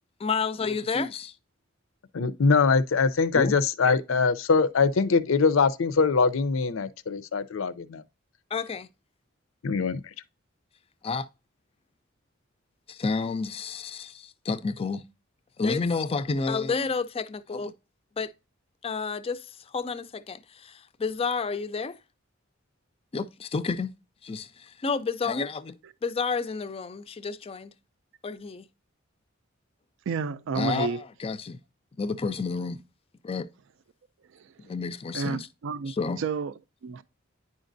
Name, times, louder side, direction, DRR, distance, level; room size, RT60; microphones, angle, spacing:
voice 1, 0.2-1.3 3.3-3.5 8.5-8.9 11.0-11.3 12.9-15.0 15.6-17.7 18.2-18.3 18.8-19.4 19.7-22.0 23.1-23.9 24.2-25.7 26.0-27.7 28.2-28.6 30.6-31.6 32.0-32.8 33.2-33.5 34.6-35.5 35.9-36.2, left 4 dB, 30° left, 0.4 m, -30 dB
voice 2, 2.1-8.0 9.6-10.0, left 4 dB, 80° left, 0.5 m, -23 dB
voice 3, 30.1-31.0 34.3-34.5 35.1-36.5 36.8-37.0, right 5 dB, 65° right, 0.4 m, -31 dB
9.6 x 5.1 x 2.6 m
head